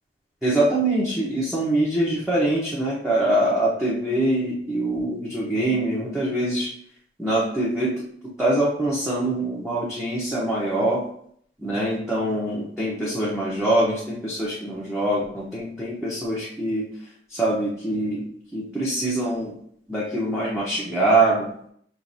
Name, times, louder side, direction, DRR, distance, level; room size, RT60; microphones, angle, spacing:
voice 1, 0.4-6.7 7.2-8.0 8.4-11.0 11.6-16.9 17.3-18.2 18.5-19.5 19.9-21.5, right 1 dB, 5° right, -8 dB, 0.8 m, -24 dB
6.1 x 2.5 x 2.6 m, 0.66 s
head